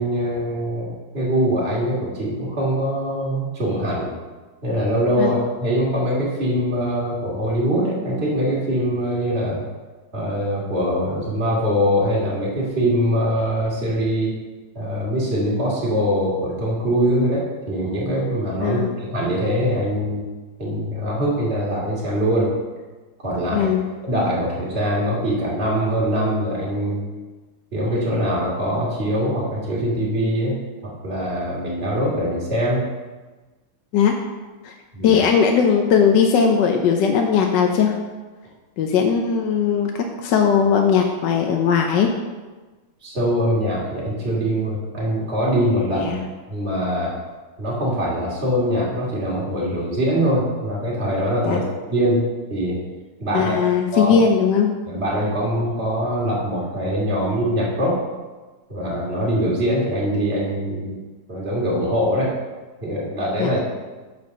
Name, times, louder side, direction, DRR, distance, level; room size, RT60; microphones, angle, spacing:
voice 1, 0.0-4.1 4.6-9.6 10.1-14.3 14.7-20.2 20.6-22.5 23.2-23.7 24.0-27.0 27.7-30.6 30.8-32.8 34.9-35.2 43.0-46.1 46.5-47.1 47.6-52.8 53.2-53.6 53.9-54.2 54.9-58.0 58.7-61.0 61.3-62.3 62.8-63.8, equal, 30° right, -6 dB, 2.6 m, -23 dB
voice 2, 18.6-18.9 23.5-23.8 33.9-34.2 34.6-34.7 35.0-37.9 38.8-39.9 40.2-42.1 46.0-46.2 51.4-51.6 53.3-54.7 63.4-63.5, left 6 dB, 65° left, 2 dB, 1.3 m, -18 dB
9.0 x 5.3 x 6.6 m, 1.3 s
omnidirectional pair, 2.2 m